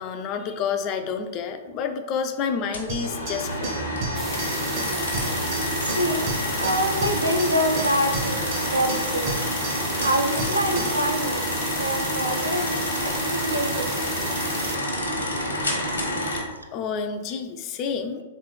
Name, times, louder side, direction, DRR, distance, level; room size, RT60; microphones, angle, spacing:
voice 1, 0.0-3.7 16.7-18.2, left 6 dB, 35° left, 8 dB, 0.3 m, -29 dB
sound 1, 2.7-16.4, equal, 75° left, 0.9 m, -28 dB
sound 2, 2.9-11.1, right 2 dB, 45° right, 0.9 m, -34 dB
sound 3, 4.1-14.8, right 2 dB, 15° right, 0.6 m, -35 dB
voice 2, 5.8-9.4 10.0-11.4 11.8-14.1, equal, 85° right, 4 dB, 0.4 m, -26 dB
3.5 x 3.1 x 3.2 m, 1.2 s
figure-of-eight pair, 105°, 0 cm